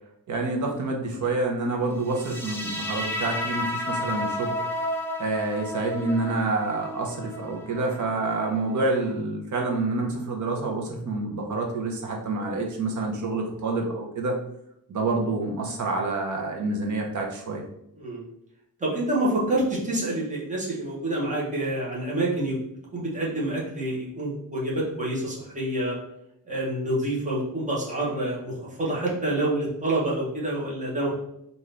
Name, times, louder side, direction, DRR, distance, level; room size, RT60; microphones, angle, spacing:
voice 1, 0.3-4.6 5.2-14.4 14.9-17.6, right 3 dB, 55° right, 1 dB, 0.8 m, -28 dB
sound 1, 2.1-9.1, left 1 dB, 5° left, 0.5 m, -32 dB
voice 2, 18.8-22.6 22.9-26.0 26.5-31.1, right 1 dB, 20° right, -5 dB, 1.0 m, -27 dB
3.7 x 2.6 x 3.3 m, 0.79 s
wide cardioid pair, 170°, 37 cm